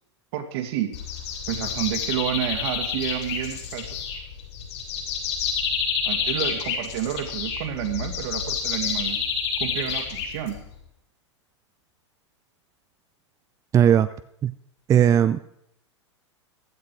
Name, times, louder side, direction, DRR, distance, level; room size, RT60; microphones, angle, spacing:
voice 1, 0.3-0.9 1.5-4.0 6.1-9.2 9.6-10.6, right 11 dB, 60° right, 6 dB, 2.4 m, -30 dB
sound 1, 0.9-10.8, left 6 dB, 65° left, 7.0 m, -29 dB
voice 2, 13.7-14.1 14.4-14.5 14.9-15.4, right 9 dB, 20° right, 13 dB, 0.4 m, -17 dB
15.5 x 12.0 x 4.7 m, 0.75 s
hypercardioid pair, 110°, 15 cm